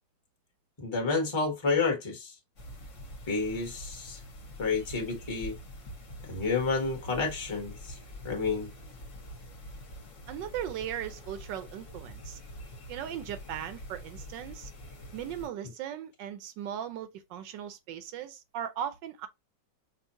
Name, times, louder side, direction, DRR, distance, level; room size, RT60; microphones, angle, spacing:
voice 1, 0.8-2.3 3.3-4.2 4.6-5.5 6.3-8.0 8.2-8.7, left 4 dB, 20° left, 1.1 m, -30 dB
sound 1, 2.6-15.5, equal, 50° left, 1.3 m, -45 dB
voice 2, 10.3-12.4 12.9-14.7 15.1-19.3, right 10 dB, 90° right, 1.4 m, -38 dB
5.3 x 2.5 x 2.7 m
omnidirectional pair, 1.9 m